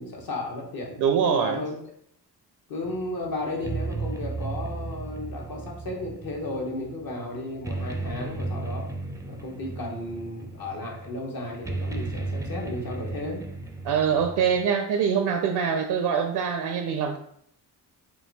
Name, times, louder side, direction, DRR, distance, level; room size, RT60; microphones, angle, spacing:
voice 1, 0.0-1.7 2.7-8.9 9.3-13.5, left 2 dB, 60° left, 0 dB, 1.2 m, -34 dB
voice 2, 1.0-1.6 13.9-17.2, right 7 dB, 75° right, 6 dB, 0.5 m, -24 dB
sound 1, 2.8-14.7, right 3 dB, 10° right, 0.4 m, -35 dB
3.8 x 2.3 x 3.9 m, 0.69 s
cardioid pair, 80°, 40 cm